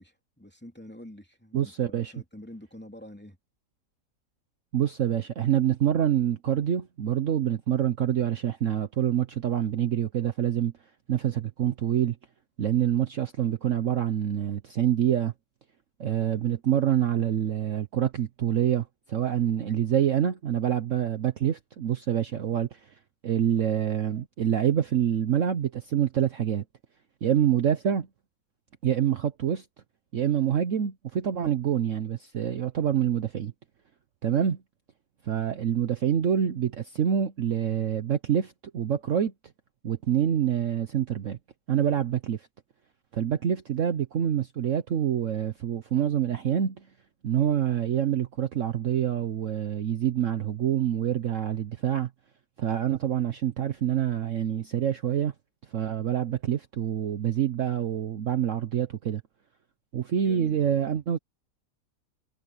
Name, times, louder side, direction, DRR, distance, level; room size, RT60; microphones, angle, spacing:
voice 1, 0.0-3.4 60.2-60.9, left 1 dB, 5° left, 2.6 m, -47 dB
voice 2, 1.5-2.1 4.7-10.7 11.1-12.2 12.6-15.3 16.0-22.8 23.2-26.6 27.2-28.1 28.8-29.6 30.1-33.5 34.2-34.6 35.3-39.3 39.8-41.4 41.7-42.5 43.1-46.8 47.2-52.1 52.6-55.3 55.7-59.2 59.9-61.2, right 9 dB, 55° right, 1.1 m, -26 dB
omnidirectional pair, 1.7 m